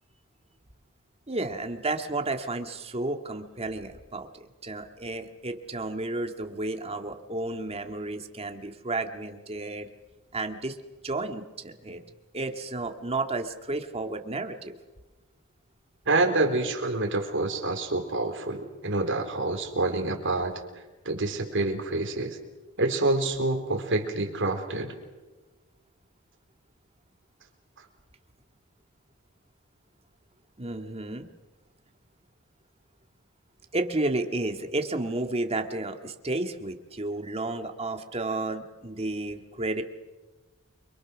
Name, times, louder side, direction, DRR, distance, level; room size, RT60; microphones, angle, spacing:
voice 1, 1.3-9.9 10.3-10.8 11.0-12.0 12.3-14.8 30.6-31.3 33.7-39.8, right 2 dB, 30° right, 5 dB, 1.9 m, -32 dB
voice 2, 16.1-20.6 21.1-22.4 22.8-24.9, right 2 dB, 60° right, 4 dB, 3.9 m, -27 dB
29.5 x 24.0 x 6.3 m, 1.2 s
head